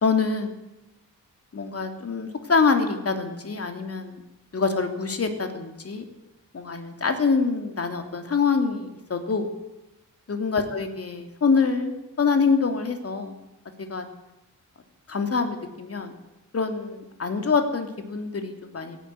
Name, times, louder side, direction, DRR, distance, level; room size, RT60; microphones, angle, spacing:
voice 1, 0.0-0.5 1.5-4.2 4.5-6.0 6.5-9.5 10.3-13.4 13.8-14.0 15.1-16.1 16.5-19.0, left 5 dB, 45° left, 6 dB, 3.1 m, -25 dB
17.5 x 16.0 x 9.7 m, 0.93 s
wide cardioid pair, 120°, 32 cm